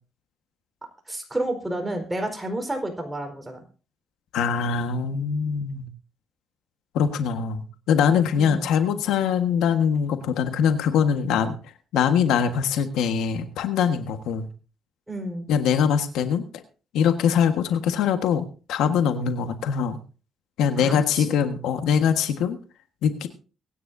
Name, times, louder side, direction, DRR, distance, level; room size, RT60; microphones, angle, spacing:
voice 1, 1.1-3.6 8.4-8.6 15.1-15.5 20.8-21.4, right 1 dB, 10° right, 4 dB, 4.7 m, -30 dB
voice 2, 4.3-5.9 6.9-11.6 11.9-14.5 15.5-16.5 16.9-20.0 20.6-22.6 23.0-23.3, left 7 dB, 90° left, 7 dB, 1.5 m, -23 dB
23.5 x 10.0 x 2.7 m, 0.36 s
cardioid pair, 90°, 0 cm